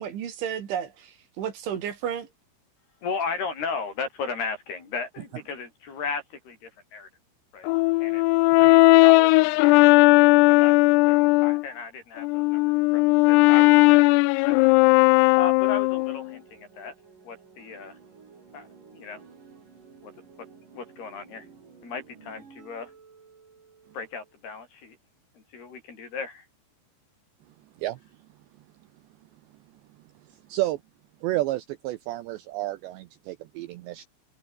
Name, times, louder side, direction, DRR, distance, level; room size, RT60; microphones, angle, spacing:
voice 1, 0.0-2.3, right 9 dB, 65° right, 5.0 m, -32 dB
voice 2, 3.0-7.1 7.5-7.7 8.0-8.2 8.6-10.1 10.5-10.8 11.1-14.1 14.4-14.6 15.4-16.9 17.2-18.0 18.5-18.7 18.9-19.2 20.0-20.1 20.7-21.5 21.8-22.9 23.9-25.0 25.5-26.5, left 5 dB, 50° left, 7.3 m, -35 dB
Brass instrument, 7.7-11.6 12.2-16.3, left 24 dB, 85° left, 3.3 m, -17 dB
sound 1, 16.0-24.4, right 5 dB, 40° right, 5.8 m, -53 dB
voice 3, 31.2-34.1, right 16 dB, 80° right, 2.6 m, -30 dB
omnidirectional pair, 6.0 m